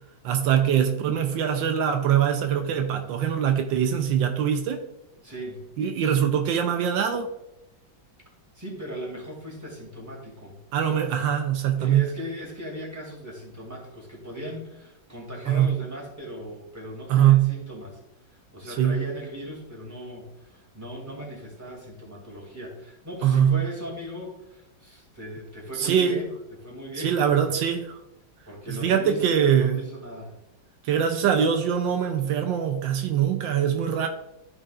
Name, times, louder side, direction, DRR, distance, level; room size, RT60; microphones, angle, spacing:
voice 1, 0.2-4.8 5.8-7.3 10.7-12.1 15.5-15.7 17.1-17.5 18.8-19.0 23.2-23.6 25.8-26.2 27.0-28.0 28.7-29.8 30.8-34.1, right 9 dB, 80° right, 6 dB, 1.4 m, -22 dB
voice 2, 5.2-5.6 8.5-10.6 11.8-18.0 18.3-26.3 26.6-27.5 28.5-30.4, equal, 10° right, -2 dB, 2.5 m, -38 dB
13.5 x 5.4 x 2.5 m, 0.90 s
omnidirectional pair, 2.0 m